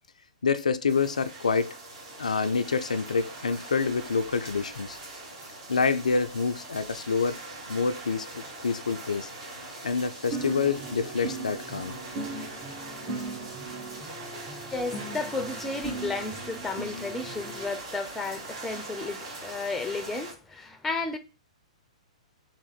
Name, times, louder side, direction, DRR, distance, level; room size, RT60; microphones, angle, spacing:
voice 1, 0.4-1.8 2.2-5.0 5.7-9.3 9.8-12.0, left 5 dB, 80° left, 0.3 m, -27 dB
sound 1, 0.9-20.3, right 2 dB, 50° right, 1.8 m, -42 dB
sound 2, 10.3-17.7, right 3 dB, 25° right, 1.5 m, -38 dB
voice 2, 14.7-21.2, left 3 dB, 5° left, 0.6 m, -33 dB
3.6 x 3.0 x 4.2 m
figure-of-eight pair, 110°, 4 cm